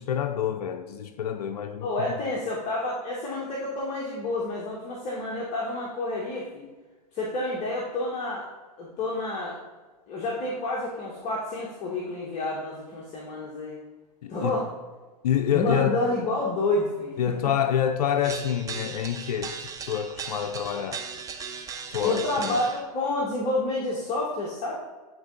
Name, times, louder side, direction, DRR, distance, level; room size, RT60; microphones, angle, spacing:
voice 1, 0.0-2.2 14.2-14.5 15.2-16.0 17.2-21.1 21.9-22.6, left 9 dB, 75° left, 0.5 m, -27 dB
voice 2, 1.8-6.6 7.1-8.5 8.8-9.6 10.1-13.8 14.3-14.6 15.5-17.5 22.0-24.7, left 2 dB, 35° left, 1.3 m, -29 dB
sound 1, 18.2-22.8, right 6 dB, 15° right, 0.6 m, -37 dB
9.2 x 3.9 x 3.9 m
hypercardioid pair, 120°, 20 cm